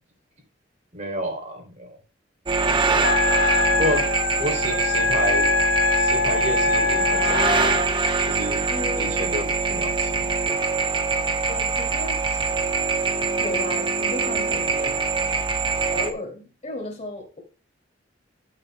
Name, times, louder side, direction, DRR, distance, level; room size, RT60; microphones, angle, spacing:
voice 1, 0.9-2.0 2.9-3.1 3.7-4.0 4.4-5.5 6.0-7.7 8.3-8.6 8.9-10.3, equal, 40° right, 3 dB, 3.0 m, -30 dB
sound 1, 2.5-16.1, right 4 dB, 25° right, 0.8 m, -24 dB
Wind instrument woodwind instrument, 3.0-7.9, left 5 dB, 90° left, 0.7 m, -23 dB
voice 2, 8.7-9.4 11.5-12.4 13.0-15.0 15.9-17.4, left 2 dB, 40° left, 3 dB, 2.6 m, -35 dB
13.5 x 7.5 x 2.2 m, 0.35 s
head